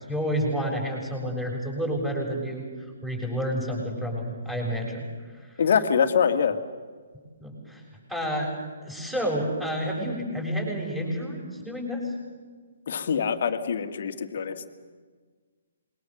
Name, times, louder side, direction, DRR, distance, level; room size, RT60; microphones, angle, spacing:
voice 1, 0.0-2.7 3.0-5.1 5.3-5.6 7.4-7.8 8.1-8.5 8.8-12.1 14.4-14.7, equal, 5° right, 0 dB, 6.9 m, -30 dB
voice 2, 5.6-6.6 12.9-14.7, left 7 dB, 50° left, 8 dB, 2.0 m, -24 dB
26.5 x 22.5 x 7.0 m, 1.5 s
figure-of-eight pair, 130°, 0 cm